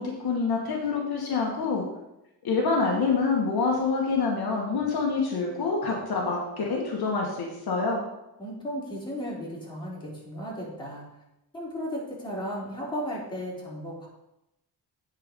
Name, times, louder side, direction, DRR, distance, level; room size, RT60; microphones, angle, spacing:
voice 1, 0.0-1.8 2.4-8.0, left 4 dB, 60° left, -1 dB, 1.6 m, -26 dB
voice 2, 8.4-11.0 11.5-14.1, equal, 10° left, -6 dB, 3.4 m, -35 dB
9.0 x 4.6 x 5.2 m, 0.90 s
cardioid pair, 100°, 41 cm